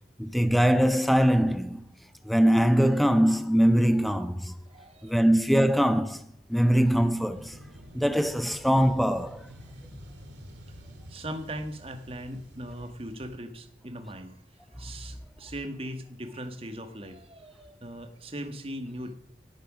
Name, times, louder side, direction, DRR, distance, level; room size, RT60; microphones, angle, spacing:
voice 1, 0.2-1.8 2.3-4.5 5.0-7.6 7.9-9.5, equal, ahead, 0.5 m, -22 dB
voice 2, 4.7-5.3 11.1-14.4 14.7-19.1, equal, 30° right, 1.5 m, -39 dB
sound 1, 7.3-13.4, equal, 75° right, 2.4 m, -48 dB
18.0 x 9.0 x 6.2 m
head